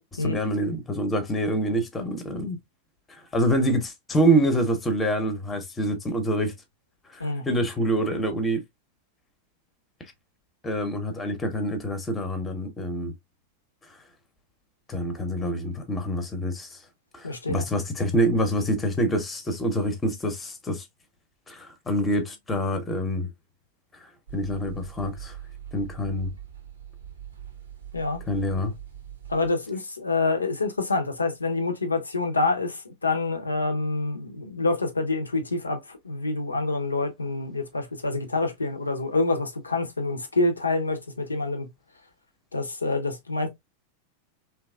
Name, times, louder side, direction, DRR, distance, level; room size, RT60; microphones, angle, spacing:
voice 1, 0.0-2.6 3.3-6.5 7.1-8.6 10.6-13.1 14.9-16.8 17.1-20.8 21.5-23.3 24.3-25.4 25.7-26.3 28.3-28.7, right 1 dB, 15° left, 0.7 m, -26 dB
voice 2, 17.2-17.7 27.9-28.2 29.3-41.7 42.5-43.5, left 3 dB, 80° left, 0.5 m, -27 dB
sound 1, 24.3-29.5, right 10 dB, 70° right, 0.6 m, -42 dB
2.9 x 2.3 x 2.2 m
figure-of-eight pair, 90°, 0 cm